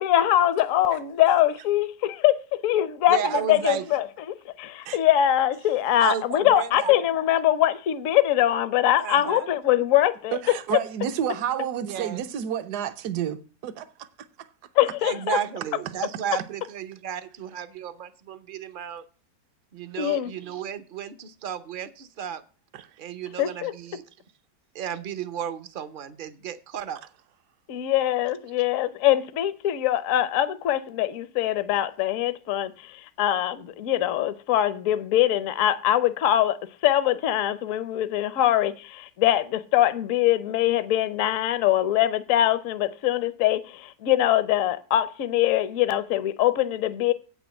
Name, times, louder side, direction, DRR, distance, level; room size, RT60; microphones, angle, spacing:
voice 1, 0.0-2.4 2.6-4.0 4.6-10.4 10.7-10.8 14.8-15.4 20.0-20.3 23.4-23.7 27.7-36.6 36.8-47.1, left 12 dB, 60° left, 0.9 m, -23 dB
voice 2, 3.1-3.8 6.0-6.9 9.0-9.5 11.8-12.2 15.0-19.0 19.7-22.4 23.0-24.0 24.7-27.0, right 8 dB, 50° right, 0.6 m, -33 dB
voice 3, 10.3-14.1 14.4-14.5 22.7-22.9, right 9 dB, 70° right, 1.3 m, -30 dB
8.4 x 6.1 x 8.2 m
omnidirectional pair, 1.8 m